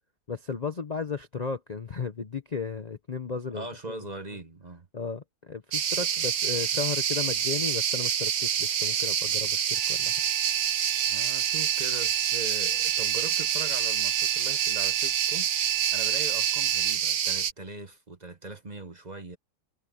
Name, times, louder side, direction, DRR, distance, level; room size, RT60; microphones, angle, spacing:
voice 1, 0.3-4.0 4.9-10.1, left 5 dB, 70° left, 0.4 m, -34 dB
voice 2, 3.5-4.9 11.1-15.5 15.9-19.4, right 2 dB, 25° right, 1.0 m, -40 dB
sound 1, 5.7-17.5, right 8 dB, 55° right, 1.3 m, -27 dB
sound 2, 9.7-17.0, right 16 dB, 70° right, 0.8 m, -33 dB
omnidirectional pair, 2.1 m